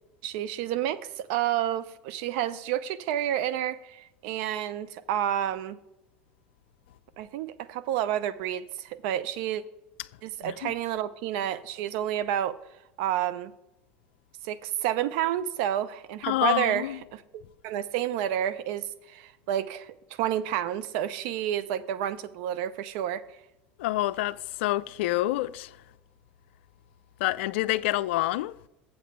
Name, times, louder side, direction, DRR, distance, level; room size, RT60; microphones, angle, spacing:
voice 1, 0.2-5.8 7.2-9.6 10.2-12.6 13.0-13.5 14.4-17.2 17.6-23.4, right 11 dB, 70° right, 0.6 m, -30 dB
voice 2, 10.4-10.7 16.2-17.0 23.8-25.7 27.2-28.5, left 16 dB, 75° left, 0.4 m, -27 dB
7.8 x 6.7 x 5.0 m
hypercardioid pair, 90°, 6 cm